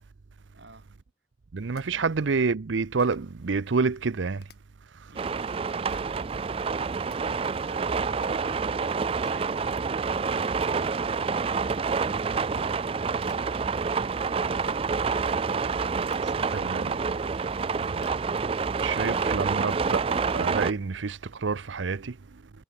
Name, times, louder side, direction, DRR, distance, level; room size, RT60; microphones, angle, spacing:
voice 1, 0.5-0.9 1.9-2.1 5.1-5.4 7.3-8.7, right 2 dB, 70° right, 6.3 m, -50 dB
sound 1, 1.4-1.5 1.7-1.8 3.0-3.4 4.4-4.6 5.9-6.1 6.8-7.2 9.2-9.4 10.2-10.3 10.5-10.7 11.6-11.7 11.9-12.1 12.9-13.4 14.7-15.0 15.9-16.2 16.8-16.9 17.3-18.2, left 4 dB, 60° left, 1.7 m, -52 dB
voice 2, 1.5-4.5 4.9-5.1 16.5-16.9 17.9-18.0 18.8-20.1 20.3-22.4, right 4 dB, 85° right, 0.6 m, -28 dB
sound 2, 5.2-20.7, right 5 dB, 30° right, 0.4 m, -28 dB
head